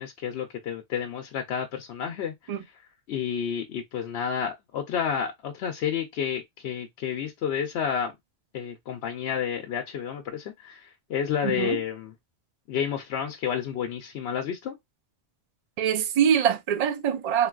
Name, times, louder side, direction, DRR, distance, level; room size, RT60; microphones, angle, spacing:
voice 1, 0.0-2.6 3.1-8.1 8.5-12.1 12.7-14.8, left 8 dB, 75° left, 0.8 m, -30 dB
voice 2, 11.4-11.8 15.8-17.5, right 8 dB, 50° right, 0.5 m, -24 dB
3.8 x 2.2 x 2.3 m
omnidirectional pair, 1.1 m